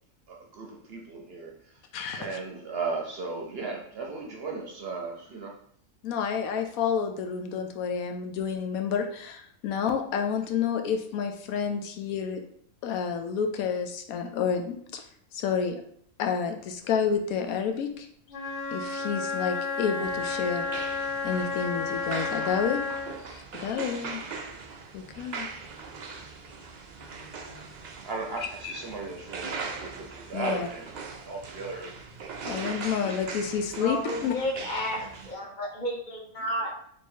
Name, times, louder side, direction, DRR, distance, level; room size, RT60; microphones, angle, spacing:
voice 1, 0.3-1.8 2.2-5.5 28.0-30.9 31.2-32.0, right 3 dB, 60° right, 1 dB, 0.7 m, -36 dB
voice 2, 1.9-2.4 6.0-12.4 12.8-15.0 15.3-15.8 16.2-18.1 18.7-20.7 21.2-22.8 23.3-24.2 24.9-25.5 28.6-28.7 30.3-30.7 32.4-34.0 34.2-34.3, left 7 dB, 90° left, 5 dB, 1.1 m, -29 dB
Wind instrument woodwind instrument, 18.3-23.2, left 4 dB, 65° left, 0.9 m, -32 dB
sound 1, 20.0-35.3, right 4 dB, 80° right, 0.4 m, -40 dB
voice 3, 33.8-36.7, equal, 40° left, -1 dB, 1.0 m, -32 dB
3.1 x 2.9 x 4.4 m, 0.66 s
omnidirectional pair, 1.4 m